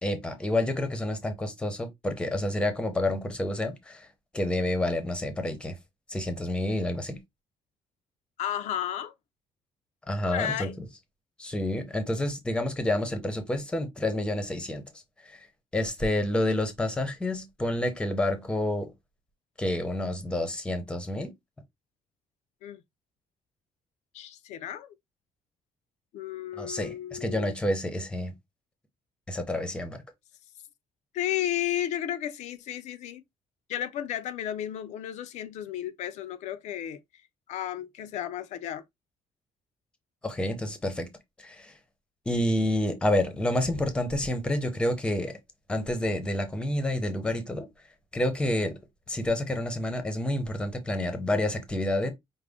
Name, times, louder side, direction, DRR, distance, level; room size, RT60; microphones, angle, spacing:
voice 1, 0.0-4.1 4.3-5.8 6.1-7.2 10.1-10.9 11.4-14.8 15.3-15.4 15.7-18.9 19.6-21.3 26.6-28.3 29.3-30.0 40.2-41.1 41.4-41.7 42.3-45.3 45.7-47.7 48.1-48.8 49.1-52.1, left 1 dB, 10° left, 0.7 m, -29 dB
voice 2, 8.4-9.1 10.2-10.8 22.6-22.8 24.1-25.0 26.1-27.5 31.1-33.2 33.7-37.2 37.5-38.8, left 11 dB, 80° left, 0.5 m, -33 dB
5.1 x 2.1 x 3.5 m
cardioid pair, 170°, 12 cm